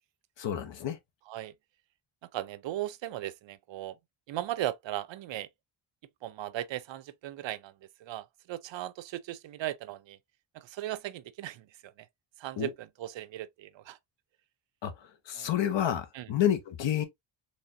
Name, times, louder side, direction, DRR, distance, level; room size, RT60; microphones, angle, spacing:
voice 1, 0.4-1.0 12.6-12.7 14.8-14.9 15.3-17.0, left 10 dB, 70° left, 1.0 m, -29 dB
voice 2, 2.3-4.0 4.3-5.5 6.2-7.7 8.0-10.2 10.5-12.1 12.4-14.0 15.3-15.5 16.1-16.3, right 13 dB, 70° right, 0.6 m, -37 dB
4.2 x 3.2 x 2.6 m
wide cardioid pair, 170°, 47 cm